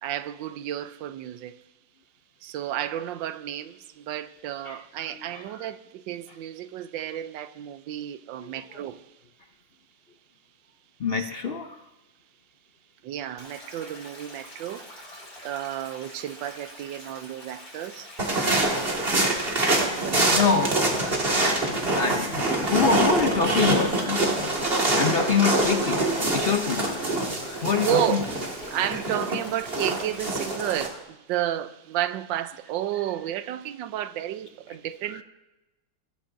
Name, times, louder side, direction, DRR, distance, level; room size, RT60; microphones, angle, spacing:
voice 1, 0.0-1.6 2.4-9.1 11.1-11.3 13.0-15.1 15.4-18.2 19.7-20.6 27.8-28.3 28.7-35.2, right 11 dB, 85° right, 1.3 m, -32 dB
voice 2, 5.1-5.7 8.4-8.5 11.0-11.8 15.5-15.6 20.3-20.7 21.0-24.7 24.9-26.1 26.3-28.2 35.1-35.2, left 5 dB, 75° left, 0.5 m, -26 dB
Stream, 13.4-30.8, left 1 dB, 35° left, 3.4 m, -46 dB
sound 1, 18.2-30.9, right 2 dB, 30° right, 2.1 m, -25 dB
22.0 x 13.0 x 2.6 m
omnidirectional pair, 2.0 m